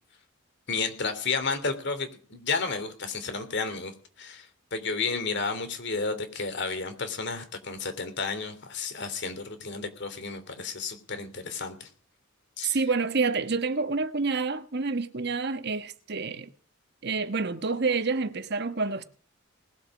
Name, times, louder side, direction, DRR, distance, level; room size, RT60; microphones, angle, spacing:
voice 1, 0.7-11.9 12.6-12.8, left 4 dB, 60° left, 3.2 m, -32 dB
voice 2, 12.7-16.5 17.0-19.1, right 4 dB, 55° right, 1.3 m, -28 dB
20.0 x 8.0 x 6.2 m
head